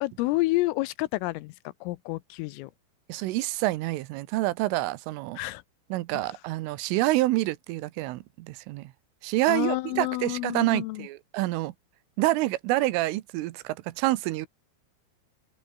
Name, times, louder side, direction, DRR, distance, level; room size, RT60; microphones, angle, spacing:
voice 1, 0.0-1.5 1.8-2.7 5.4-5.6 6.1-6.3 9.5-11.1, left 20 dB, 90° left, 3.4 m, -29 dB
voice 2, 3.1-5.4 5.9-8.9 9.2-11.7 12.2-14.5, right 18 dB, 80° right, 3.4 m, -27 dB
omnidirectional pair, 5.9 m